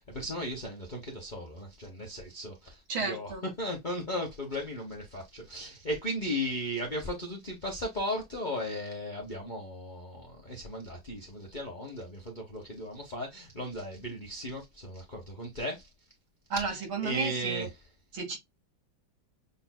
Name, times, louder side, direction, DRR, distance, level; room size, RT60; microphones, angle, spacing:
voice 1, 0.0-3.3 3.6-15.9 16.7-16.8 17.0-17.7, equal, 35° left, 0.8 m, -36 dB
voice 2, 2.9-3.4 16.5-17.7 18.1-18.4, right 4 dB, 75° right, 2.5 m, -32 dB
6.9 x 2.6 x 2.2 m
omnidirectional pair, 2.2 m